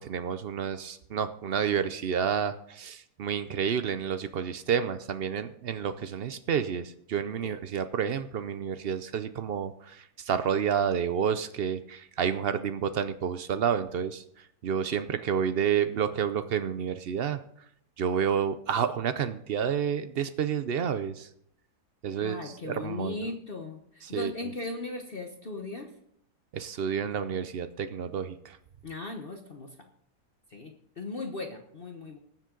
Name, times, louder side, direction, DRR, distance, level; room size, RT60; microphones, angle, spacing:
voice 1, 0.0-17.4 18.0-21.3 22.0-23.3 24.0-24.5 26.5-28.6, right 7 dB, 75° right, 11 dB, 0.5 m, -30 dB
voice 2, 22.2-25.9 28.8-29.7 30.5-32.2, left 3 dB, 40° left, 4 dB, 1.1 m, -38 dB
19.5 x 7.5 x 3.8 m, 0.71 s
omnidirectional pair, 1.7 m